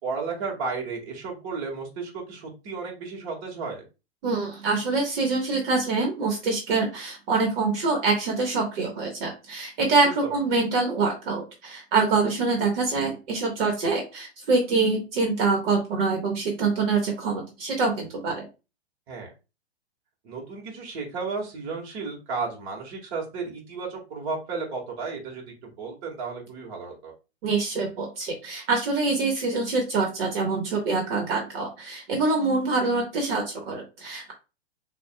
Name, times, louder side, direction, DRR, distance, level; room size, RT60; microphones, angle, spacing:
voice 1, 0.0-3.8 10.0-10.4 19.1-19.3 20.2-27.1, right 4 dB, 40° right, -1 dB, 1.7 m, -33 dB
voice 2, 4.2-18.5 27.4-34.3, right 3 dB, 60° right, 2 dB, 1.5 m, -25 dB
6.8 x 2.6 x 2.2 m, 0.30 s
hypercardioid pair, 125°, 33 cm